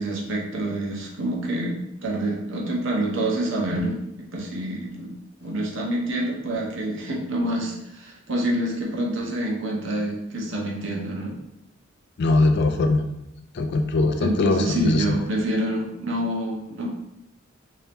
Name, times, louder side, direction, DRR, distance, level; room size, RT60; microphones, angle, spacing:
voice 1, 0.0-11.4 14.2-16.9, right 1 dB, 70° right, -2 dB, 0.8 m, -27 dB
voice 2, 12.2-13.0 13.6-15.0, left 2 dB, 55° left, 6 dB, 0.4 m, -21 dB
2.8 x 2.8 x 3.4 m, 0.83 s
head